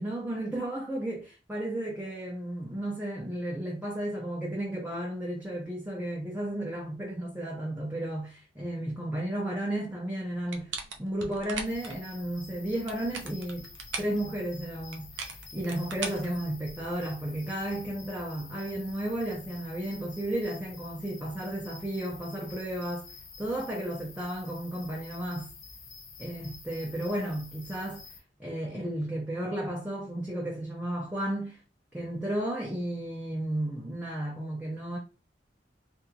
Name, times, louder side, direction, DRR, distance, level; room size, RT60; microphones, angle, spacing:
voice 1, 0.0-10.7 11.0-13.7 14.0-15.1 15.5-23.0 23.4-25.5 26.2-28.0 28.4-31.6 31.9-35.0, right 1 dB, 10° right, 0.8 m, -33 dB
sound 1, 10.5-11.9 12.7-14.2 14.9-16.9, right 4 dB, 90° right, 0.6 m, -39 dB
sound 2, 11.6-28.2, left 4 dB, 55° left, 1.1 m, -48 dB
3.5 x 2.6 x 2.7 m
head